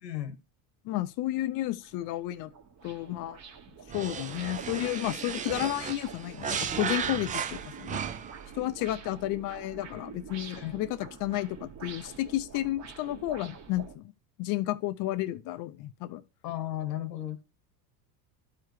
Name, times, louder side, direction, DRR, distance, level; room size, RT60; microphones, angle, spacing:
voice 1, 0.0-0.4 10.5-10.7 16.4-17.4, left 13 dB, 90° left, 1.4 m, -34 dB
voice 2, 0.8-2.5 2.8-3.4 3.9-8.0 8.5-14.1 14.4-16.2, left 15 dB, 45° left, 0.5 m, -32 dB
sound 1, 1.0-1.1 1.6-13.9, right 6 dB, 35° right, 1.4 m, -47 dB
sound 2, 3.9-8.5, right 7 dB, 20° right, 0.4 m, -35 dB
12.0 x 4.8 x 3.1 m
supercardioid pair, 100°, 48 cm